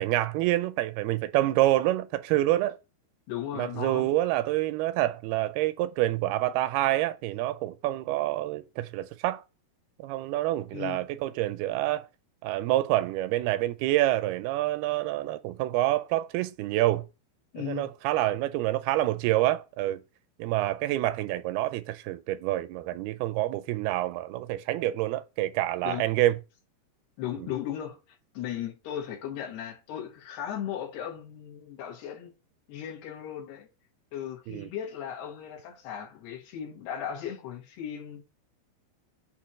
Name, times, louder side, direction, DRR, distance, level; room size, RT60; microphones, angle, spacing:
voice 1, 0.0-2.8 3.5-9.4 10.0-12.1 12.4-17.1 17.6-20.0 20.4-26.4 27.4-27.5 34.5-34.7, right 15 dB, 85° right, 2.4 m, -27 dB
voice 2, 3.3-4.1 10.7-11.0 17.5-17.9 25.8-26.1 27.2-28.0 28.4-32.3 32.7-33.7 34.1-38.2, left 10 dB, 85° left, 3.8 m, -36 dB
8.4 x 3.0 x 6.2 m
omnidirectional pair, 4.5 m